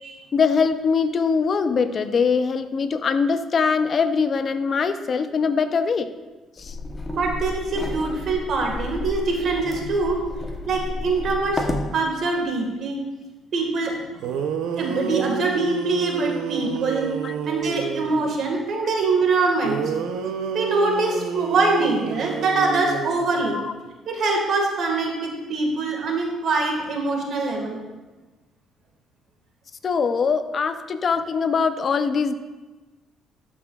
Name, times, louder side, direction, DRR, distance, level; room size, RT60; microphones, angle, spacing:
voice 1, 0.3-6.1 6.6-6.8 17.2-17.3 23.5-23.7 29.8-32.3, left 5 dB, 40° left, 10 dB, 0.5 m, -22 dB
sound 1, 6.6-11.9, left 2 dB, 20° left, 0.9 m, -31 dB
voice 2, 7.1-10.2 10.7-11.6 11.9-13.0 13.5-14.2 14.8-17.1 17.4-19.8 20.5-23.6 24.1-27.8, right 3 dB, 60° right, 1 dB, 1.6 m, -24 dB
sound 2, 13.9-14.0 14.2-18.4 19.6-23.7, right 6 dB, 80° right, 0.6 m, -29 dB
12.0 x 6.0 x 2.4 m, 1.2 s
cardioid pair, 105°, 0 cm